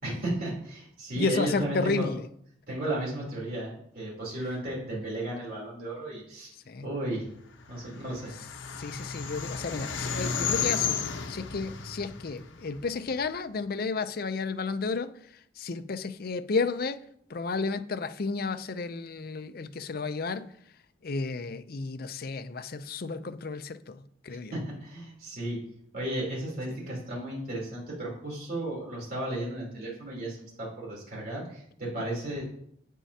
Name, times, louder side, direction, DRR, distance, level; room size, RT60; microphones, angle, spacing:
voice 1, 0.0-2.1 2.7-6.5 6.8-7.2 7.7-8.3 24.5-25.6 25.9-32.4, right 1 dB, 50° right, 3.4 m, -34 dB
voice 2, 1.2-2.3 6.7-6.9 8.8-11.0 11.3-15.1 15.6-17.0 17.3-20.5 21.0-23.9 24.2-24.5, left 4 dB, 50° left, 0.5 m, -32 dB
sound 1, 7.8-13.2, left 6 dB, 80° left, 0.9 m, -33 dB
9.1 x 8.3 x 2.8 m
head